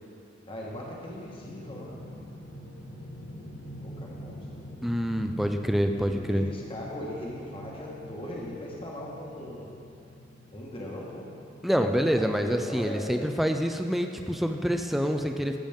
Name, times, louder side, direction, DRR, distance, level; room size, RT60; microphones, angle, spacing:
voice 1, 0.5-2.0 3.8-4.4 6.0-9.7 10.5-11.3 12.1-13.2, left 1 dB, 25° left, -3 dB, 1.4 m, -39 dB
sound 1, 0.6-12.8, equal, 60° left, 1.2 m, -45 dB
voice 2, 4.8-6.5 11.6-15.6, equal, ahead, 5 dB, 0.4 m, -26 dB
14.0 x 7.2 x 3.6 m, 2.6 s
head